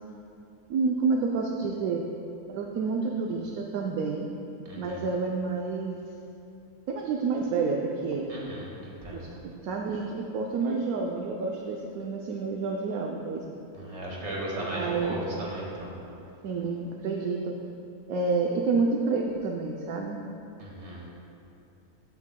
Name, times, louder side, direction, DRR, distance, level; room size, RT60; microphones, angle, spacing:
voice 1, 0.7-2.0 2.5-4.3 4.8-6.0 6.9-8.3 9.1-13.5 14.6-15.2 16.4-17.5 18.1-20.2, right 4 dB, 75° right, 1 dB, 1.1 m, -29 dB
voice 2, 4.7-5.1 8.3-9.3 13.7-15.9 20.6-21.1, right 1 dB, 50° right, -4 dB, 2.1 m, -36 dB
15.5 x 8.4 x 2.2 m, 2.7 s
omnidirectional pair, 1.6 m